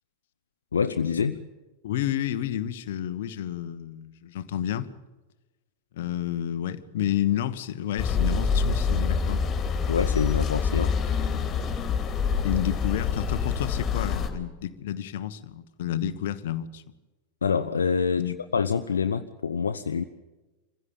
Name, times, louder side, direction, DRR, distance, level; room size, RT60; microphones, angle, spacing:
voice 1, 0.7-1.4 9.9-10.9 17.4-20.0, left 6 dB, 70° left, 0.8 m, -26 dB
voice 2, 1.8-4.9 5.9-9.4 12.1-12.2 12.4-16.8 18.2-18.4, left 11 dB, 55° left, 1.2 m, -30 dB
sound 1, 8.0-14.3, left 6 dB, 25° left, 3.1 m, -26 dB
26.0 x 16.0 x 8.8 m
figure-of-eight pair, 90°, 0 cm